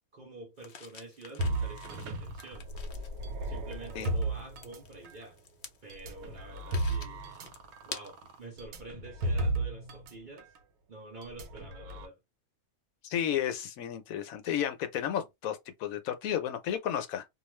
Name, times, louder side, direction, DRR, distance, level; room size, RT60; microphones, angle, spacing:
voice 1, 0.1-2.7 3.4-5.4 5.8-7.4 7.9-10.5 10.9-12.2, right 2 dB, 45° right, 0.6 m, -47 dB
Fumigene maison, 0.6-8.5, left 6 dB, 55° left, 0.6 m, -49 dB
sound 1, 1.4-5.3 5.9-10.1 10.4-10.6 11.2-12.1, right 1 dB, 85° right, 1.1 m, -34 dB
voice 2, 13.0-17.2, left 10 dB, 75° left, 1.0 m, -32 dB
2.4 x 2.3 x 3.0 m
omnidirectional pair, 1.5 m